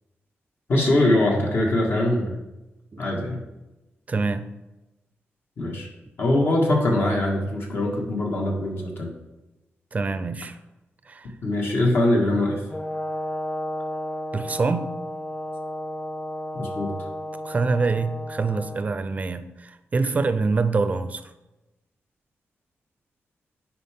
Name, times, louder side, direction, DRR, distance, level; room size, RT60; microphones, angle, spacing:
voice 1, 0.7-2.4 3.0-3.4 5.6-5.9 6.2-9.1 11.4-12.6 16.5-16.9, left 1 dB, 55° left, -1 dB, 1.7 m, -22 dB
voice 2, 4.1-4.5 9.9-10.6 11.1-11.3 14.3-14.9 17.4-21.2, right 4 dB, 35° right, 11 dB, 0.5 m, -25 dB
Brass instrument, 12.7-18.8, left 1 dB, 35° left, 2.5 m, -33 dB
9.5 x 4.6 x 3.6 m, 1.0 s
wide cardioid pair, 125°, 5 cm